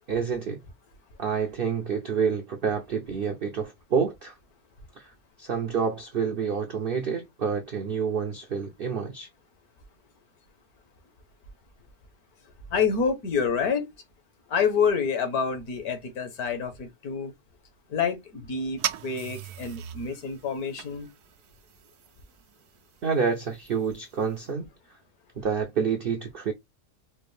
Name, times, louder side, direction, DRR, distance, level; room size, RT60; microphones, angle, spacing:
voice 1, 0.1-0.6 1.2-4.4 5.0-5.1 5.4-9.3 23.0-24.7 25.4-26.5, right 6 dB, 70° right, 0.5 m, -28 dB
voice 2, 12.7-13.9 14.5-17.3 17.9-21.1, left 6 dB, 70° left, 1.5 m, -27 dB
sound 1, 18.8-24.5, right 11 dB, 85° right, 1.1 m, -39 dB
4.4 x 2.5 x 3.2 m
omnidirectional pair, 1.7 m